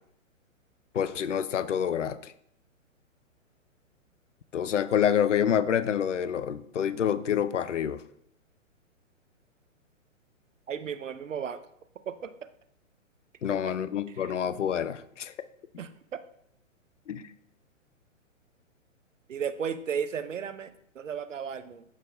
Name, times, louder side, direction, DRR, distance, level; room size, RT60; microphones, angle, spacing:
voice 1, 0.9-2.3 4.5-8.0 13.4-15.3 17.1-17.3, left 9 dB, 65° left, 15 dB, 0.6 m, -27 dB
voice 2, 10.7-11.6 12.1-12.5 13.6-13.7 14.1-14.3 15.8-16.2 19.3-21.8, right 7 dB, 70° right, 11 dB, 0.8 m, -35 dB
13.5 x 5.5 x 2.3 m, 0.71 s
figure-of-eight pair, 120°, 39 cm